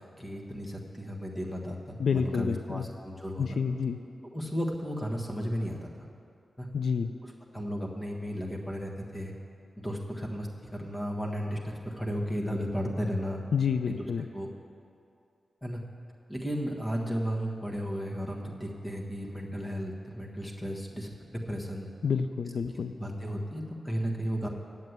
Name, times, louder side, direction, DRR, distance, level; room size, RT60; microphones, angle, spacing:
voice 1, 0.0-3.6 4.3-6.1 6.6-6.7 7.2-9.3 9.8-13.4 13.8-14.0 14.3-14.5 15.6-15.8 16.3-21.9 23.0-24.5, equal, 15° left, 0 dB, 1.4 m, -34 dB
voice 2, 2.0-2.8 3.4-4.0 6.7-7.1 13.5-14.3 22.0-22.9, left 6 dB, 75° left, 8 dB, 0.4 m, -28 dB
9.3 x 7.5 x 8.1 m, 2.6 s
wide cardioid pair, 85°, 0 cm